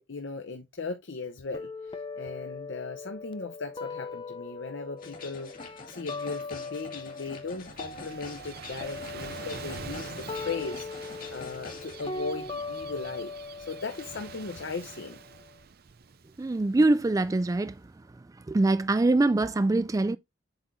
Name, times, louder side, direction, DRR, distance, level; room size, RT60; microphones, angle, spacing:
voice 1, 0.0-13.3 13.6-15.2, left 4 dB, 70° left, 0.8 m, -38 dB
sound 1, 1.5-7.5 7.8-15.6, left 3 dB, 25° left, 0.6 m, -40 dB
sound 2, 5.0-12.1, left 4 dB, 45° left, 2.0 m, -45 dB
Gull seagull / Waves surf, 7.2-17.8, right 5 dB, 55° right, 0.6 m, -46 dB
voice 2, 16.4-17.8 18.5-20.2, right 2 dB, 20° right, 0.3 m, -23 dB
8.0 x 5.9 x 2.6 m
head